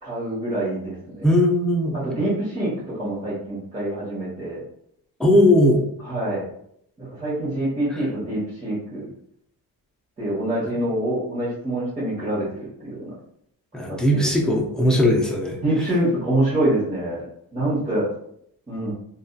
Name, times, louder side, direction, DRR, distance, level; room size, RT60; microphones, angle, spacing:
voice 1, 0.0-1.3 1.9-4.6 6.0-6.4 7.0-9.1 10.2-13.1 13.9-14.5 15.6-17.2 17.5-18.0 18.7-18.9, right 1 dB, 20° right, -11 dB, 1.1 m, -26 dB
voice 2, 1.2-2.0 5.2-5.8 13.7-15.6, left 1 dB, ahead, -2 dB, 0.4 m, -18 dB
2.6 x 2.3 x 2.2 m, 0.71 s
cardioid pair, 115°, 37 cm